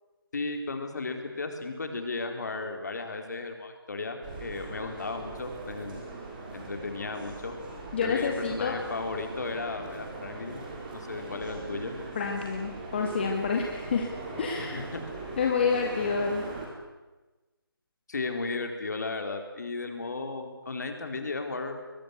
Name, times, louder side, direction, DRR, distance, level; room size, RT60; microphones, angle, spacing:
voice 1, 0.3-6.0 6.5-7.5 8.0-10.6 10.9-12.0 14.6-15.0 18.1-21.8, left 3 dB, 45° left, 5 dB, 4.0 m, -35 dB
sound 1, 4.2-16.7, right 3 dB, 20° right, 4.8 m, -40 dB
voice 2, 7.9-8.8 12.2-14.1 14.4-14.8 15.4-16.4, left 5 dB, 25° left, 1 dB, 2.1 m, -28 dB
24.0 x 22.0 x 8.1 m, 1.2 s
figure-of-eight pair, 165°, 13 cm